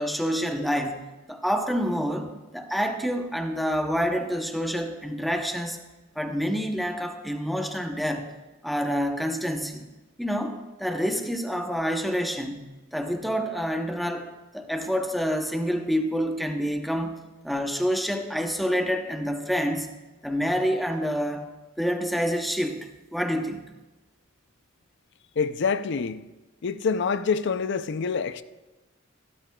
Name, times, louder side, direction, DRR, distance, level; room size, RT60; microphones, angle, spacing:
voice 1, 0.0-2.3 2.5-5.8 6.2-8.3 8.6-9.9 10.2-14.3 14.5-17.2 17.4-19.9 20.2-21.5 21.8-23.7, equal, ahead, 0.8 m, -27 dB
voice 2, 25.4-26.2 26.6-28.4, left 5 dB, 60° left, 0.4 m, -26 dB
15.5 x 13.0 x 2.3 m
head